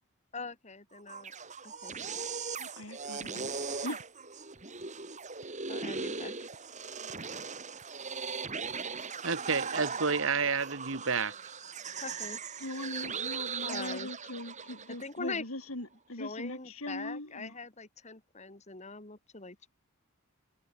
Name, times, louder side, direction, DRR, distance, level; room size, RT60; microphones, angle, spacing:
voice 1, 0.3-1.3 1.6-1.9 5.7-6.3 12.0-12.4 13.6-14.1 15.0-15.4 16.2-19.7, left 4 dB, 30° left, 2.4 m, -42 dB
sound 1, 0.9-15.1, right 5 dB, 35° right, 3.9 m, -39 dB
voice 2, 2.6-3.5 3.8-4.0 12.6-17.5, left 1 dB, 75° left, 4.3 m, -41 dB
voice 3, 9.2-11.3, right 5 dB, 65° right, 1.6 m, -30 dB
head